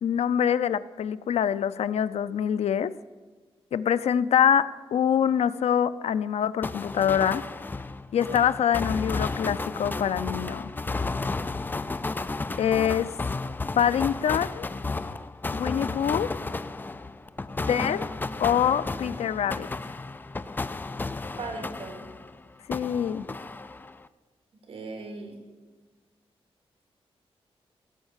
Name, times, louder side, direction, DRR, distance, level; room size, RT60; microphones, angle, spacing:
voice 1, 0.0-2.9 3.7-7.4 8.1-10.7 12.6-13.1 13.8-14.7 15.5-16.3 17.7-18.0 18.4-19.7 22.7-23.2, left 9 dB, 90° left, 15 dB, 0.5 m, -25 dB
sound 1, 6.6-22.4 22.7-24.1, left 3 dB, 20° left, 0.4 m, -33 dB
voice 2, 21.4-22.1 24.7-25.4, right 3 dB, 65° right, 3 dB, 2.8 m, -38 dB
17.0 x 6.4 x 9.0 m, 1.4 s
wide cardioid pair, 145°, 10 cm